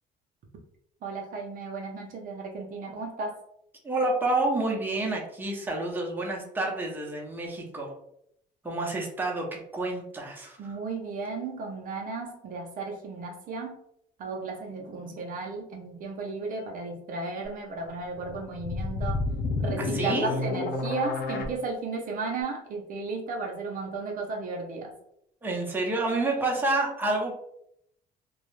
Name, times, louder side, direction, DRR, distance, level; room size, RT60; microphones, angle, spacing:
voice 1, 1.0-3.4 10.6-13.8 14.2-24.9, right 3 dB, 55° right, 1 dB, 0.5 m, -34 dB
voice 2, 3.8-7.9 8.6-10.8 19.8-20.3 25.4-27.3, right 2 dB, 10° right, -1 dB, 0.6 m, -29 dB
sound 1, 18.2-21.5, left 3 dB, 65° left, 0.5 m, -30 dB
2.3 x 2.0 x 3.0 m, 0.74 s
cardioid pair, 110°, 17 cm